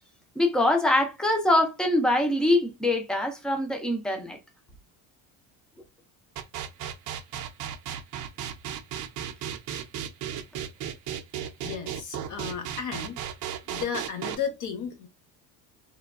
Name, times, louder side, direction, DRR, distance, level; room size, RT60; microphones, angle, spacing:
voice 1, 0.4-4.4, left 1 dB, ahead, 0.4 m, -24 dB
sound 1, 6.4-14.4, right 9 dB, 55° right, 0.5 m, -34 dB
voice 2, 11.6-13.2 13.7-15.1, left 7 dB, 50° left, 0.7 m, -33 dB
3.1 x 2.2 x 2.4 m
cardioid pair, 150°, 38 cm